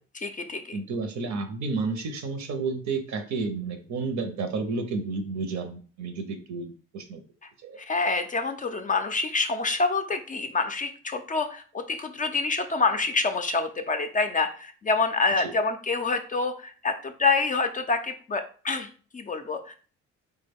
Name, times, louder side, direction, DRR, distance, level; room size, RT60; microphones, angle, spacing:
voice 1, 0.1-0.8 7.9-19.7, left 3 dB, 25° left, 7 dB, 0.3 m, -27 dB
voice 2, 0.7-7.2 7.6-7.8 15.4-15.5, right 4 dB, 70° right, 7 dB, 0.7 m, -31 dB
3.4 x 2.2 x 3.4 m, 0.41 s
cardioid pair, 90°, 30 cm